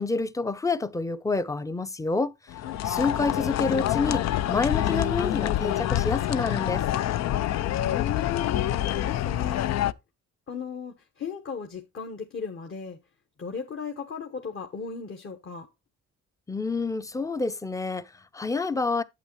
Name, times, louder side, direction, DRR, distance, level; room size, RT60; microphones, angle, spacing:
voice 1, 0.0-2.3 2.8-6.9 16.5-19.0, left 3 dB, 10° left, 0.6 m, -28 dB
sound 1, 2.5-9.9, left 13 dB, 60° left, 0.5 m, -26 dB
voice 2, 7.7-9.8 10.5-13.0 13.4-15.7, left 6 dB, 40° left, 1.2 m, -36 dB
8.4 x 8.1 x 3.0 m
cardioid pair, 90°, 30 cm